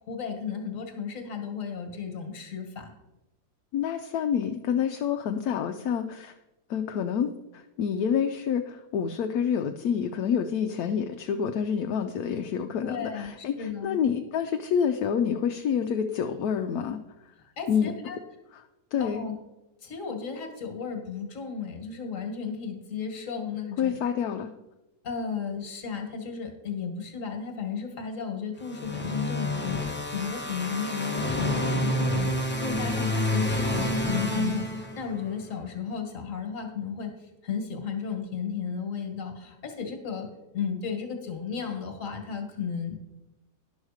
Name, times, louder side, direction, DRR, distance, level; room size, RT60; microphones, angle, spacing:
voice 1, 0.1-2.9 12.8-13.3 13.6-14.0 17.6-18.2 19.0-19.4 19.8-23.9 25.0-37.1 37.4-40.3 40.5-43.0, left 6 dB, 50° left, 5 dB, 1.7 m, -34 dB
voice 2, 3.7-6.3 6.7-17.0 17.7-17.9 18.5-18.6 18.9-19.2 23.8-24.5, left 7 dB, 70° left, 6 dB, 1.0 m, -28 dB
sound 1, 28.7-35.3, left 1 dB, 10° left, 0.6 m, -29 dB
10.5 x 6.4 x 4.8 m, 0.99 s
omnidirectional pair, 1.8 m